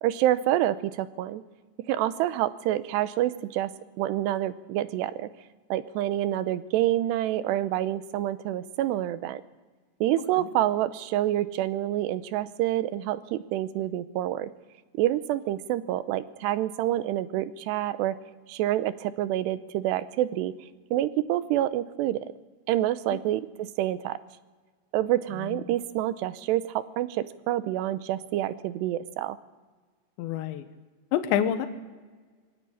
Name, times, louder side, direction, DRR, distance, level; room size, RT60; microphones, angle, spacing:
voice 1, 0.0-1.4 1.9-3.7 4.0-5.3 5.7-9.4 10.0-14.5 15.0-18.2 18.5-20.5 20.9-22.2 22.7-24.2 24.9-29.4, right 13 dB, 80° right, 13 dB, 2.8 m, -27 dB
voice 2, 25.4-25.7 30.2-30.7 31.1-31.7, left 10 dB, 80° left, 9 dB, 3.4 m, -28 dB
23.0 x 17.0 x 8.6 m, 1.4 s
omnidirectional pair, 5.1 m